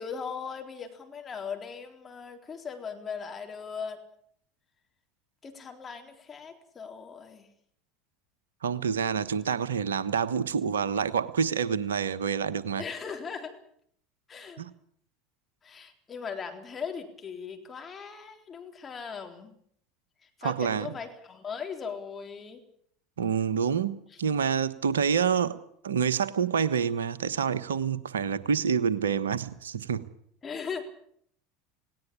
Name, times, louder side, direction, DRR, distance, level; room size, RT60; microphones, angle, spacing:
voice 1, 0.0-4.0 5.4-7.5 12.8-13.6 14.3-14.6 15.6-19.5 20.4-22.6 24.1-24.2 30.4-30.9, left 6 dB, 30° left, 4 dB, 3.8 m, -39 dB
voice 2, 8.6-12.8 14.6-14.7 20.4-20.9 23.2-25.6 25.8-30.1, right 7 dB, 80° right, 14 dB, 1.2 m, -27 dB
19.0 x 18.0 x 8.7 m, 0.66 s
figure-of-eight pair, 75°, 0 cm